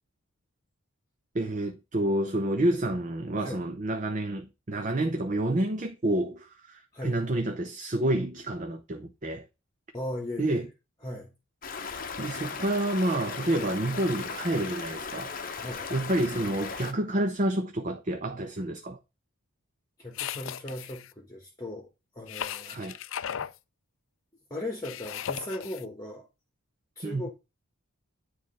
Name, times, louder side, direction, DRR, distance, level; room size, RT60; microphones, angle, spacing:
voice 1, 1.3-9.5 10.4-10.7 12.2-15.3 15.9-19.0 22.7-22.9 27.0-27.2, right 1 dB, 35° right, 0.6 m, -29 dB
voice 2, 9.9-10.6 11.0-11.3 15.6-15.8 20.0-21.9 22.1-22.8 24.5-26.3 27.0-27.3, left 1 dB, 15° left, 1.2 m, -37 dB
Stream, 11.6-16.9, left 5 dB, 40° left, 0.8 m, -37 dB
sound 1, 20.1-21.1 22.3-23.6 24.8-25.8, left 9 dB, 60° left, 0.4 m, -36 dB
9.7 x 3.3 x 5.4 m
head